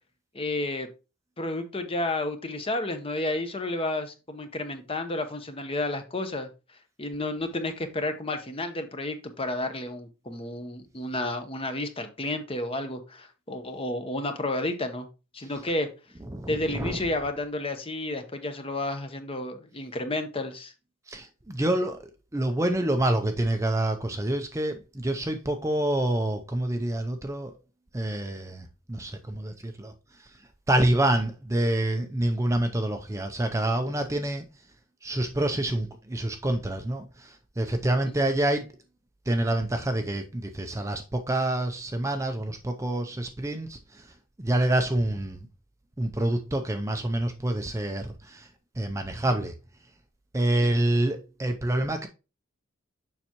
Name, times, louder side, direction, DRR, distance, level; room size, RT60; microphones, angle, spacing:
voice 1, 0.3-0.9 1.4-6.5 7.0-15.1 15.3-15.9 16.5-20.7 38.2-38.3 50.7-50.8, left 2 dB, 25° left, 0.9 m, -31 dB
voice 2, 16.3-17.0 21.1-22.0 22.3-27.5 27.9-29.9 30.7-34.4 35.0-38.7 39.3-44.1 44.4-45.4 46.0-48.5 48.8-49.5 50.3-52.1, right 1 dB, 15° right, 0.5 m, -27 dB
7.0 x 5.6 x 2.9 m
head